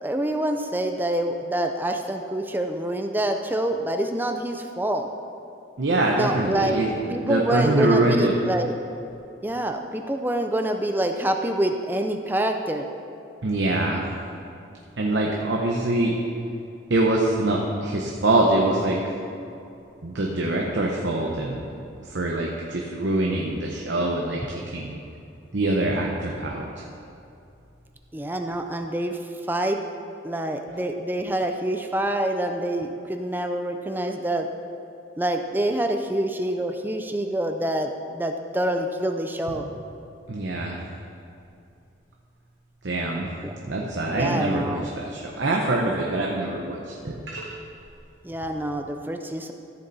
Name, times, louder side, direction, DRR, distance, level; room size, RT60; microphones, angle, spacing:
voice 1, 0.0-5.1 6.1-6.8 7.1-8.7 9.4-12.9 28.1-29.2 29.5-29.8 30.2-34.5 35.2-39.7 43.4-43.5 44.1-44.8 48.2-49.5, right 1 dB, 10° right, 5 dB, 0.5 m, -26 dB
voice 2, 5.8-6.9 7.2-8.4 13.4-14.0 15.0-16.2 16.9-19.0 20.0-21.6 22.0-25.0 25.5-26.7 40.3-40.8 42.8-43.3 43.7-47.6, right 2 dB, 70° right, -1 dB, 0.9 m, -24 dB
14.0 x 6.9 x 4.1 m, 2.7 s
head